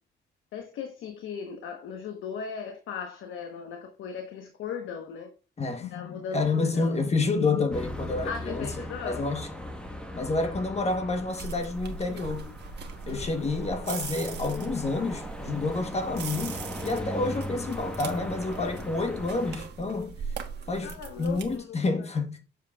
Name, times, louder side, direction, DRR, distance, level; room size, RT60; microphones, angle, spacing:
voice 1, 0.5-5.3 5.8-7.0 7.3-7.6 8.2-9.2 13.1-13.5 20.8-21.8, left 7 dB, 80° left, 1.1 m, -37 dB
voice 2, 5.6-5.9 6.3-9.5 10.1-12.6 13.1-20.1 20.7-22.4, left 3 dB, 35° left, 1.1 m, -29 dB
sound 1, 7.7-19.6, equal, 5° left, 1.3 m, -39 dB
sound 2, 11.3-21.6, right 5 dB, 60° right, 1.3 m, -40 dB
7.4 x 7.1 x 2.4 m
cardioid pair, 90°, 20 cm